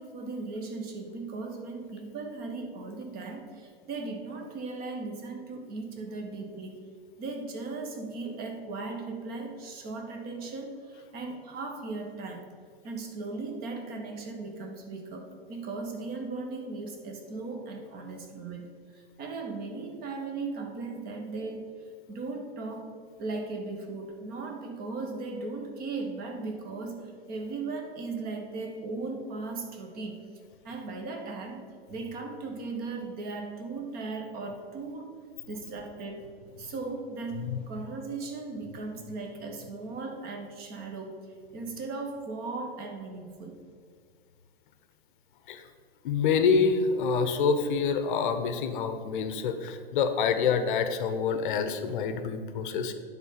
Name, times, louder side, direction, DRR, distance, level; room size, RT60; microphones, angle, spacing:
voice 1, 0.0-6.7 7.2-12.5 12.8-21.6 22.1-22.9 23.2-30.2 30.6-31.6 31.9-35.1 35.5-36.3 36.6-41.2 41.5-43.6, right 3 dB, 30° right, 3 dB, 1.3 m, -37 dB
voice 2, 46.0-52.9, left 5 dB, 55° left, 9 dB, 0.8 m, -27 dB
9.5 x 3.9 x 5.6 m, 2.1 s
hypercardioid pair, 110°, 31 cm